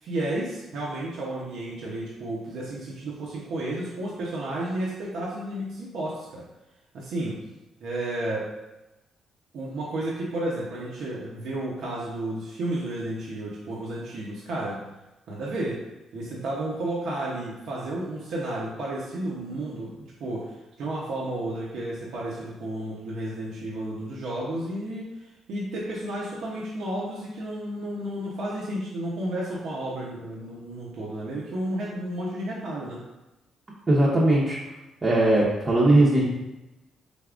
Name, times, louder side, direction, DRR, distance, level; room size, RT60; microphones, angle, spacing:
voice 1, 0.0-6.4 6.9-7.4 7.8-8.5 9.5-14.8 15.3-15.8 16.1-19.9 20.2-33.0, right 1 dB, 75° right, -5 dB, 0.8 m, -32 dB
voice 2, 33.9-34.6 35.0-36.3, right 1 dB, 30° right, -7 dB, 0.8 m, -19 dB
4.0 x 3.5 x 2.5 m, 0.98 s
cardioid pair, 90°, 0 cm